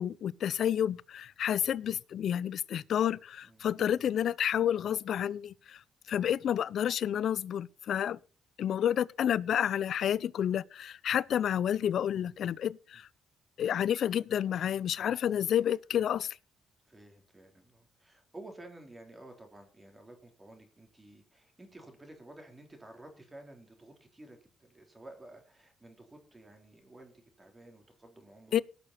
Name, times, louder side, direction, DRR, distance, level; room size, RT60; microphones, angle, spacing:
voice 1, 0.0-5.8 6.1-8.2 8.6-13.1 13.6-16.4 28.5-28.6, left 9 dB, 65° left, 0.5 m, -30 dB
voice 2, 3.4-4.1 12.9-13.0 16.9-28.6, right 1 dB, 15° right, 3.6 m, -52 dB
18.0 x 6.7 x 4.2 m
cardioid pair, 90°, 0 cm